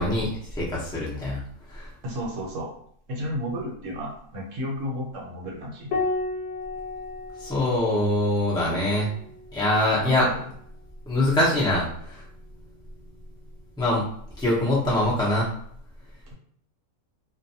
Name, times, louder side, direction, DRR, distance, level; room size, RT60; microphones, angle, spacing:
voice 1, 0.0-1.4 1.7-1.9 7.4-9.1 9.5-10.3 11.1-12.2 13.8-14.0 14.4-15.5, left 1 dB, 5° left, -6 dB, 0.3 m, -23 dB
voice 2, 2.0-2.7 3.1-5.9 10.2-10.4, equal, 60° right, -1 dB, 1.0 m, -32 dB
Piano, 5.9-10.8 12.4-13.2, left 3 dB, 85° left, 1.2 m, -34 dB
2.5 x 2.2 x 2.7 m, 0.63 s
omnidirectional pair, 1.6 m